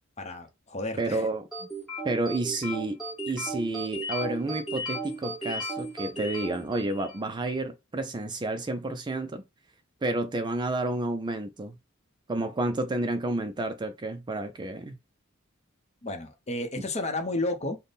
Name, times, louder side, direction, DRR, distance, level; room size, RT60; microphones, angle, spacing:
voice 1, 0.2-1.3 16.0-17.8, left 2 dB, 35° left, 0.7 m, -32 dB
voice 2, 1.0-1.5 2.0-3.0 3.3-9.4 10.0-11.7 12.3-15.0, right 2 dB, 20° right, 0.4 m, -30 dB
sound 1, 1.5-7.3, right 1 dB, ahead, 1.5 m, -35 dB
3.4 x 2.1 x 4.0 m
head